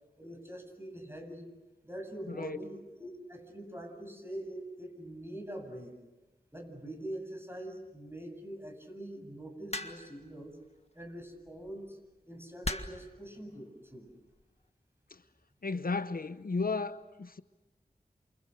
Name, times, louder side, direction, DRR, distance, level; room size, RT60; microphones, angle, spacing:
voice 1, 0.2-1.5 1.8-5.9 6.5-10.6 10.9-12.0 12.2-14.1, right 1 dB, 15° right, 7.7 m, -44 dB
sound 1, 9.7-10.2 11.5-11.7 12.6-13.1 14.1-14.4, left 2 dB, 40° left, 1.7 m, -37 dB
voice 2, 15.6-17.4, left 4 dB, 65° left, 0.8 m, -34 dB
29.0 x 28.0 x 6.6 m
wide cardioid pair, 50°, 16 cm